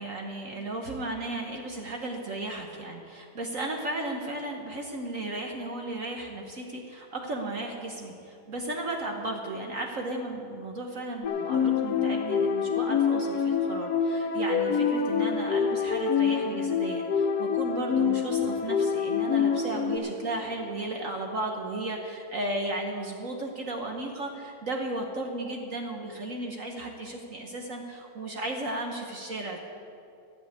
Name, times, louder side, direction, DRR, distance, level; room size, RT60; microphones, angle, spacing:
voice 1, 0.0-29.6, right 2 dB, 50° right, 2 dB, 1.1 m, -35 dB
sound 1, 11.2-20.0, left 6 dB, 60° left, 1.1 m, -26 dB
13.0 x 6.1 x 9.4 m, 2.5 s
omnidirectional pair, 2.2 m